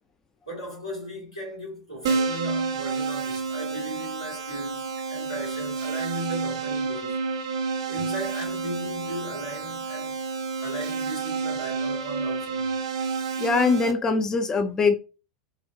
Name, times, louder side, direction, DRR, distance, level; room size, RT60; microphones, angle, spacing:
voice 1, 0.4-7.2 7.9-10.2 10.6-12.7, equal, 85° left, 1.8 m, -37 dB
Keyboard (musical), 2.1-13.9, right 4 dB, 60° right, 0.6 m, -29 dB
voice 2, 13.4-14.9, left 4 dB, 20° left, 0.4 m, -22 dB
3.8 x 2.1 x 2.7 m
figure-of-eight pair, 85°, 3 cm